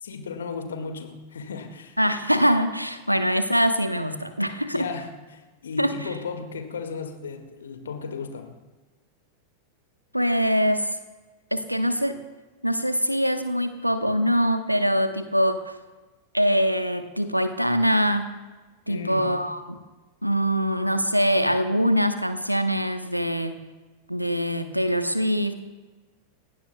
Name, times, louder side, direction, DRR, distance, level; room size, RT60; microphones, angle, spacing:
voice 1, 0.0-2.0 4.7-8.6 18.9-19.4, left 5 dB, 65° left, 5 dB, 2.0 m, -35 dB
voice 2, 2.0-4.9 5.8-5.9 10.1-10.9 11.5-12.1 12.6-15.6 16.3-18.3 18.9-19.8 20.2-23.5 24.1-25.5, equal, 90° right, 9 dB, 1.1 m, -23 dB
30.0 x 16.0 x 2.3 m, 1.2 s
figure-of-eight pair, 90°, 0 cm